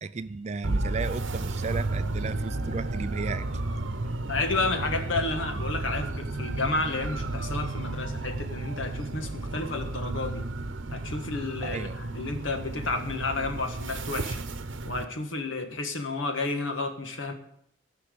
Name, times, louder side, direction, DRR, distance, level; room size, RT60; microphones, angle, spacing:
voice 1, 0.0-3.5 7.8-7.9 11.6-12.0, right 4 dB, 35° right, 13 dB, 0.4 m, -34 dB
sound 1, 0.6-15.0, right 2 dB, 70° right, 0.9 m, -32 dB
voice 2, 4.3-10.5 10.9-14.5 14.8-17.3, left 3 dB, 75° left, 6 dB, 1.5 m, -31 dB
15.5 x 5.7 x 6.7 m, 0.72 s
head